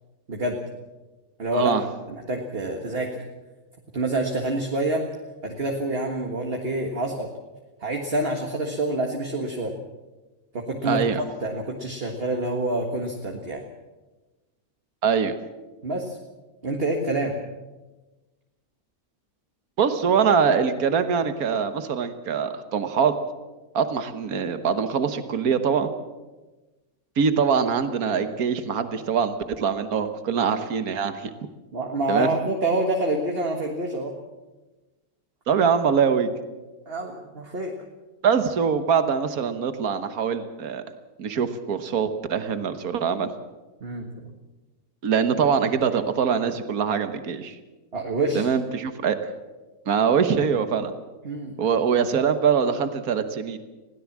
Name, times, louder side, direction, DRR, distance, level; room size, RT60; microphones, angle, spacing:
voice 1, 0.3-0.6 1.4-1.7 2.1-3.2 3.9-5.1 5.4-7.3 7.8-9.8 10.5-13.6 15.8-16.2 16.6-17.4 31.7-34.2 36.9-37.7 43.8-44.3 47.9-48.5 51.2-51.6, right 1 dB, 40° right, 2 dB, 1.9 m, -27 dB
voice 2, 10.8-11.2 15.0-15.4 19.8-23.1 23.7-25.9 27.2-31.3 32.1-32.3 35.5-36.3 38.2-40.8 41.2-43.3 45.0-47.5 48.3-49.2 49.9-50.9 51.6-53.6, right 6 dB, 75° right, 10 dB, 1.7 m, -23 dB
21.5 x 16.5 x 7.4 m, 1.2 s
omnidirectional pair, 1.6 m